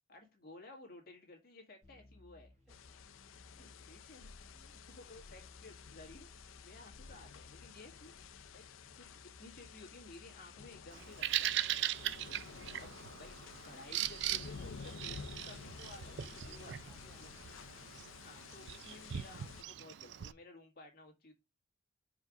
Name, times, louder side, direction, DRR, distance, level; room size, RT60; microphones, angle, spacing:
voice 1, 0.1-2.5 3.5-8.1 8.5-8.7 9.0-11.5 12.8-13.3 13.6-16.8 17.2-17.3 18.2-21.3, left 2 dB, 50° left, 2 dB, 1.9 m, -55 dB
sound 1, 1.8-12.5, left 1 dB, 35° right, 3.1 m, -61 dB
voice 2, 2.6-3.0 12.3-12.6 16.1-17.7, left 2 dB, ahead, -2 dB, 2.2 m, -66 dB
sound 2, 2.7-19.6, left 6 dB, 85° left, 0.5 m, -52 dB
Bird vocalization bird call bird song, 10.9-20.3, right 12 dB, 60° right, 0.3 m, -40 dB
5.2 x 4.8 x 4.9 m, 0.24 s
head